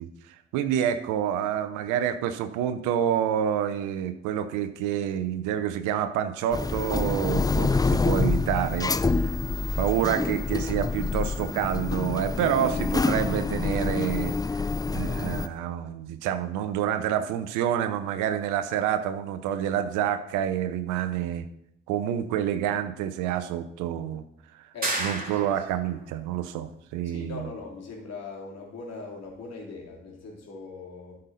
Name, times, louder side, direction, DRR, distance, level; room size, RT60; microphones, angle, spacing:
voice 1, 0.0-9.4 9.8-21.5 21.9-24.2 24.5-24.7 25.0-27.5, right 10 dB, 70° right, 11 dB, 0.8 m, -28 dB
sound 1, 6.5-15.5, left 3 dB, 10° left, 0.4 m, -27 dB
voice 2, 24.7-25.5 27.0-31.2, left 3 dB, 55° left, -1 dB, 3.1 m, -40 dB
sound 2, 24.8-25.9, right 2 dB, 25° right, 2.8 m, -31 dB
13.0 x 5.4 x 4.1 m, 0.75 s
hypercardioid pair, 40°, 31 cm